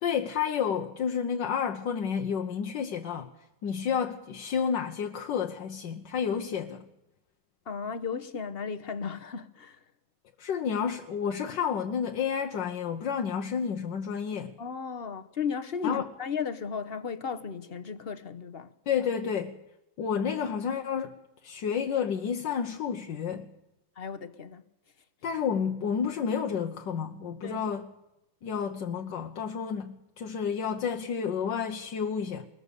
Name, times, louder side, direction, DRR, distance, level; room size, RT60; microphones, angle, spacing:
voice 1, 0.0-3.3 3.6-6.9 10.4-14.6 15.8-16.1 18.9-19.6 20.0-21.1 21.4-23.5 25.2-27.9 28.4-32.5, left 7 dB, 80° left, 1.7 m, -30 dB
voice 2, 7.7-9.8 14.6-18.7 24.0-24.6 27.4-27.6, left 6 dB, 40° left, 1.1 m, -35 dB
21.5 x 21.0 x 6.8 m
omnidirectional pair, 1.9 m